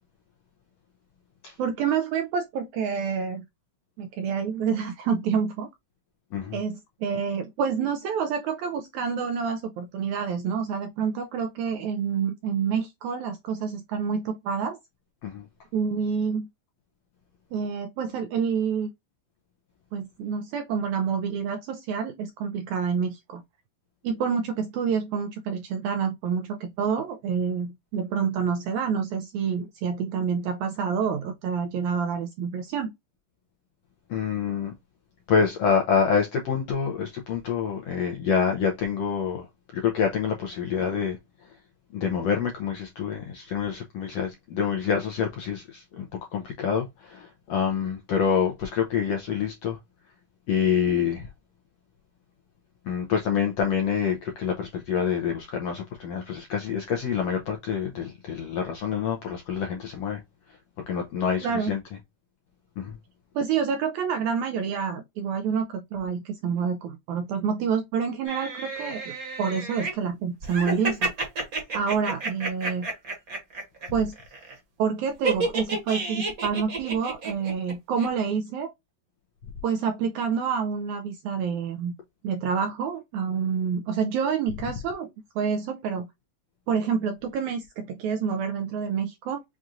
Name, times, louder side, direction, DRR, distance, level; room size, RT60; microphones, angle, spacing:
voice 1, 1.6-3.4 4.0-5.7 6.5-14.8 15.7-16.5 17.5-18.9 19.9-23.4 24.0-32.9 61.4-61.7 63.3-69.1 69.4-71.1 71.7-72.9 73.9-74.1 74.8-78.7 79.6-81.9 82.2-86.1 86.7-89.4, right 6 dB, 85° right, 1.7 m, -28 dB
voice 2, 34.1-34.7 35.3-39.5 39.7-41.2 41.9-49.8 50.5-51.3 52.9-60.2 60.9-61.8 62.8-63.0, left 7 dB, 80° left, 1.5 m, -27 dB
sound 1, 68.2-69.9 70.4-73.9 74.1-74.5 75.2-77.7 78.0-78.1, right 3 dB, 45° right, 1.1 m, -30 dB
6.0 x 2.4 x 2.5 m
omnidirectional pair, 3.9 m